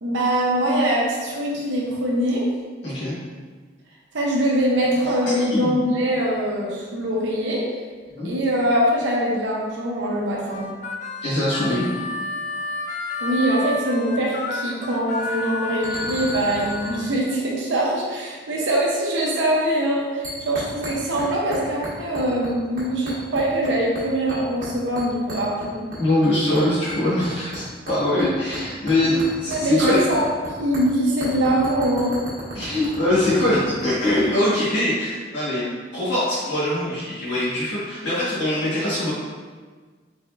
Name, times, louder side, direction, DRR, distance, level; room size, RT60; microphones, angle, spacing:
voice 1, 0.0-2.5 4.1-7.7 8.2-10.7 13.2-25.9 29.5-30.2 30.6-32.2, right 1 dB, 80° right, -3 dB, 0.7 m, -23 dB
voice 2, 2.8-3.1 5.0-5.1 5.4-5.8 8.2-8.3 11.2-12.0 26.0-30.0 32.5-35.6 35.9-39.1, left 1 dB, 80° left, -12 dB, 1.4 m, -22 dB
Harmonica, 10.5-17.1, left 2 dB, 40° left, 0.3 m, -30 dB
sound 1, 15.1-15.4 15.8-17.4 20.2-21.3 21.5-22.5 22.8-23.7 24.0-24.7 25.0-26.3 26.6-30.5 30.7-30.8 31.2-34.3, equal, 55° right, 1.3 m, -35 dB
4.2 x 4.1 x 2.5 m, 1.5 s
head